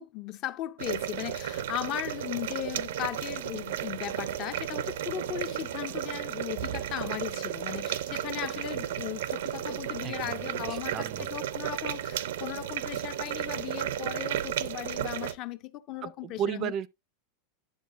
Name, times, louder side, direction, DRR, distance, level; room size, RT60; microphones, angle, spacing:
voice 1, 0.4-1.3 1.7-6.6 6.9-7.3 7.6-7.8 8.2-9.2 9.7-10.9 11.3-12.0 12.4-15.6 15.9-16.9, left 13 dB, 35° left, 0.5 m, -36 dB
sound 1, 0.8-15.3, right 11 dB, 75° right, 0.6 m, -34 dB
voice 2, 10.0-11.3 16.0-16.9, right 9 dB, 30° right, 0.4 m, -34 dB
10.5 x 7.2 x 2.5 m
supercardioid pair, 170°, 0 cm